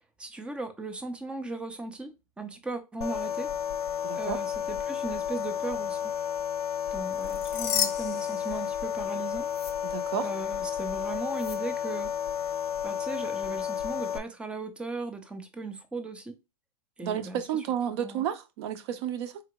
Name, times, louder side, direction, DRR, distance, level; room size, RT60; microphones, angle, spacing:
voice 1, 0.2-3.5 4.1-6.1 6.9-9.5 10.2-12.1 12.8-16.4 17.0-17.6 18.0-18.2, right 3 dB, 5° right, 0.4 m, -37 dB
sound 1, 3.0-14.2, left 8 dB, 80° left, 0.5 m, -32 dB
voice 2, 4.0-4.4 9.8-10.3 17.0-19.4, right 9 dB, 45° right, 0.6 m, -32 dB
sound 2, 7.1-9.1 9.5-9.7 11.3-11.6, left 10 dB, 35° left, 0.7 m, -33 dB
3.7 x 3.2 x 2.9 m
hypercardioid pair, 150°, 19 cm